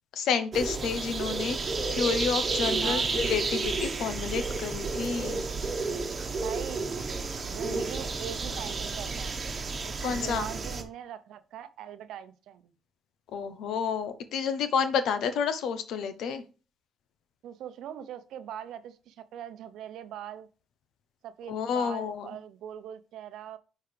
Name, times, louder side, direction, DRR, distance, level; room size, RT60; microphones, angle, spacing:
voice 1, 0.1-5.5 7.7-7.8 10.0-10.5 13.3-16.4 21.5-22.3, left 6 dB, 80° left, 11 dB, 0.9 m, -30 dB
sound 1, 0.5-10.8, right 3 dB, 35° right, 1.2 m, -31 dB
voice 2, 6.4-6.9 7.4-9.3 9.8-12.7 17.4-20.5 21.2-23.6, right 10 dB, 85° right, 12 dB, 0.7 m, -41 dB
9.5 x 4.7 x 3.4 m, 0.35 s
cardioid pair, 90°, 0 cm